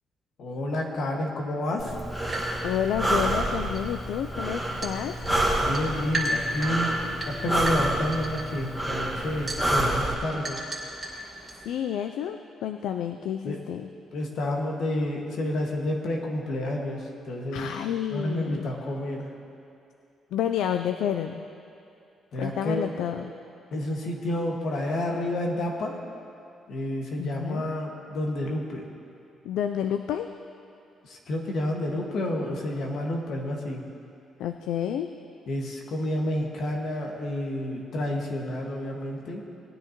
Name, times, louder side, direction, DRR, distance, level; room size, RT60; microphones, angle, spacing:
voice 1, 0.4-1.9 5.6-7.0 7.3-10.6 13.4-13.7 14.1-17.7 18.1-19.3 22.3-22.8 23.7-26.0 26.7-28.8 31.0-33.8 35.5-39.4, left 1 dB, 70° left, 0 dB, 1.7 m, -30 dB
Breathing, 1.8-10.1, right 1 dB, 15° left, 1.6 m, -28 dB
sound 1, 1.9-11.7, right 1 dB, 30° right, 2.4 m, -37 dB
voice 2, 2.6-5.1 11.1-11.3 11.6-13.9 17.5-18.7 20.3-21.5 22.4-23.3 27.2-27.6 29.4-30.3 34.4-35.1, left 9 dB, 85° left, 7 dB, 0.4 m, -30 dB
19.0 x 9.9 x 3.0 m, 2.6 s
cardioid pair, 90°, 0 cm